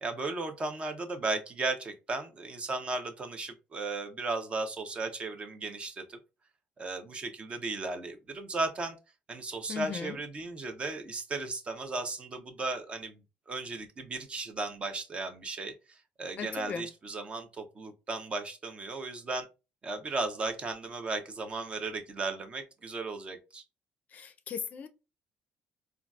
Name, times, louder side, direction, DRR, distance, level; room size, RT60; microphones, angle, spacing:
voice 1, 0.0-6.2 6.8-9.0 9.3-13.2 13.5-19.5 19.8-23.6, right 3 dB, 30° right, 0.7 m, -35 dB
voice 2, 9.7-10.2 16.4-16.9 24.1-24.9, left 7 dB, 45° left, 0.4 m, -37 dB
3.8 x 2.3 x 2.3 m
cardioid pair, 115°, 4 cm